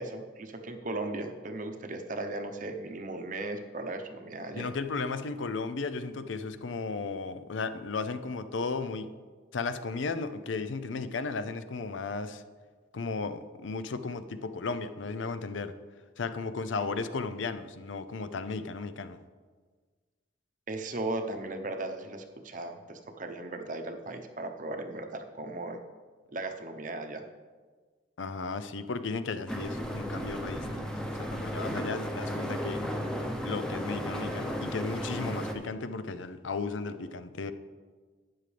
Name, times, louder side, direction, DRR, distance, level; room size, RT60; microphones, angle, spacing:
voice 1, 0.0-4.7 20.7-25.8 26.3-27.3, right 2 dB, 45° right, 0.8 m, -37 dB
voice 2, 4.5-9.1 9.5-12.4 12.9-15.7 16.2-19.2 28.2-30.9 31.2-32.9 33.4-37.5, left 4 dB, 75° left, 0.6 m, -35 dB
sound 1, 29.5-35.5, equal, 5° left, 0.8 m, -34 dB
12.5 x 9.1 x 3.4 m
head